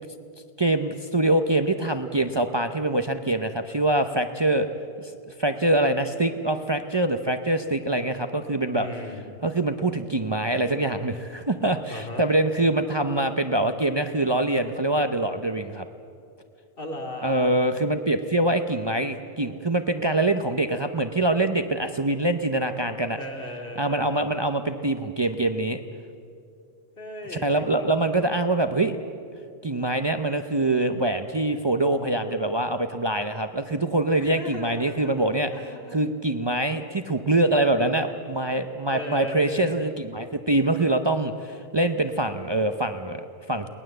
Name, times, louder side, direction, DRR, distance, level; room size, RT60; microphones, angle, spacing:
voice 1, 0.6-4.7 5.0-8.9 9.4-15.8 17.2-23.2 23.8-25.8 27.3-29.0 29.6-35.5 35.9-43.7, right 2 dB, 30° right, 7 dB, 0.7 m, -24 dB
voice 2, 8.7-9.3 11.9-12.2 16.8-17.6 23.2-24.2 27.0-27.9 34.2-36.0 38.9-39.8, equal, 60° left, 2 dB, 2.9 m, -37 dB
22.5 x 19.0 x 7.9 m, 2.4 s
omnidirectional pair, 1.0 m